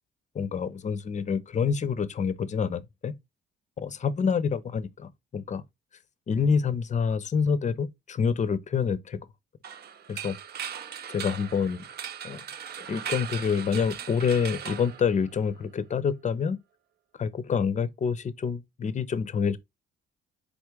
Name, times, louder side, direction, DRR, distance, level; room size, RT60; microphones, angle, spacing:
voice 1, 0.3-3.1 3.8-5.6 6.3-9.2 10.1-10.4 11.1-11.8 12.2-12.4 12.9-16.6 17.2-19.6, left 6 dB, 35° left, 0.6 m, -27 dB
sound 1, 9.6-15.6, right 9 dB, 55° right, 0.5 m, -39 dB
4.1 x 3.4 x 3.1 m
cardioid pair, 90°, 20 cm